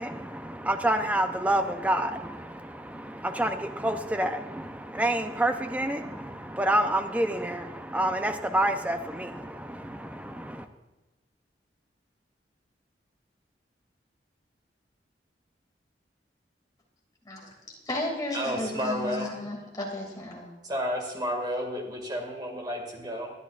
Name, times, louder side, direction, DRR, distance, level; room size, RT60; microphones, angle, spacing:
voice 1, 0.0-10.7, right 1 dB, 10° right, 7 dB, 0.6 m, -28 dB
voice 2, 17.2-20.5, left 1 dB, 20° left, -2 dB, 2.5 m, -34 dB
voice 3, 18.3-19.3 20.6-23.3, equal, 25° right, 1 dB, 2.1 m, -31 dB
20.0 x 11.0 x 2.5 m, 1.1 s
head